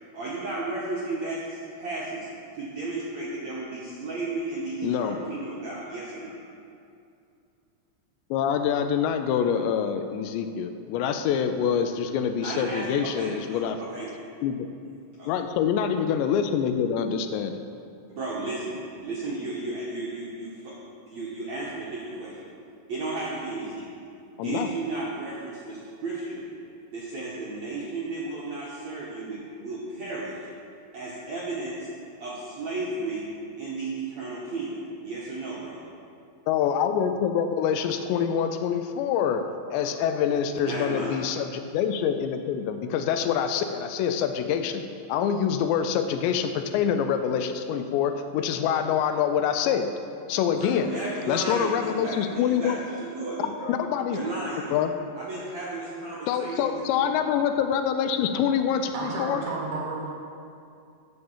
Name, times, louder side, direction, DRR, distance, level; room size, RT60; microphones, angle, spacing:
voice 1, 0.1-2.3 2.5-6.4 12.4-14.1 15.2-15.3 18.1-20.7 21.1-22.5 22.9-24.0 24.3-26.5 26.9-30.5 30.9-31.9 32.2-33.3 33.6-35.8 39.8-40.0 40.6-41.2 50.6-53.8 54.1-54.8 55.1-57.2, right 2 dB, 85° right, -7 dB, 1.5 m, -34 dB
voice 2, 4.8-5.2 8.3-13.8 14.4-14.7 15.3-17.5 24.4-24.7 36.5-39.4 39.7-44.8 45.1-49.9 50.3-50.9 51.3-52.8 53.7-54.2 54.7-54.9 56.3-59.4, left 8 dB, 80° left, 8 dB, 2.6 m, -25 dB
voice 3, 58.9-60.1, right 3 dB, 65° right, -3 dB, 3.8 m, -32 dB
9.4 x 6.6 x 7.2 m, 2.5 s
omnidirectional pair, 5.4 m